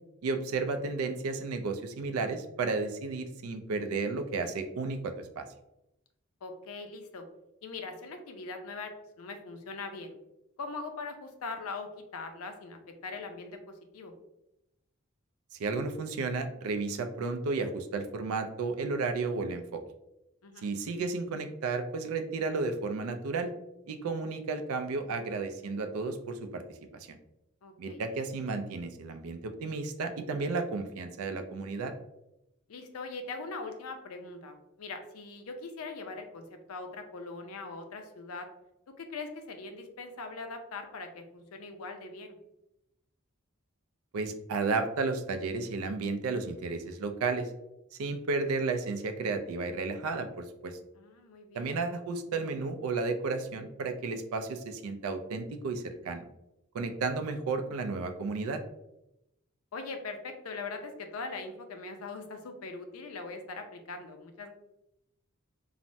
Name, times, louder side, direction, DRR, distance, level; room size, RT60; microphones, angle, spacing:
voice 1, 0.2-5.5 15.6-19.8 20.6-23.5 23.9-27.2 27.8-31.9 44.1-47.5 47.9-50.8 51.5-56.2 56.7-58.6, right 4 dB, 80° right, 7 dB, 0.4 m, -33 dB
voice 2, 6.4-7.3 7.6-10.2 10.6-14.1 20.4-20.7 27.6-28.0 32.7-38.5 39.0-42.4 50.9-51.7 59.7-64.5, left 3 dB, 85° left, 6 dB, 0.5 m, -41 dB
3.2 x 2.0 x 2.6 m, 0.87 s
head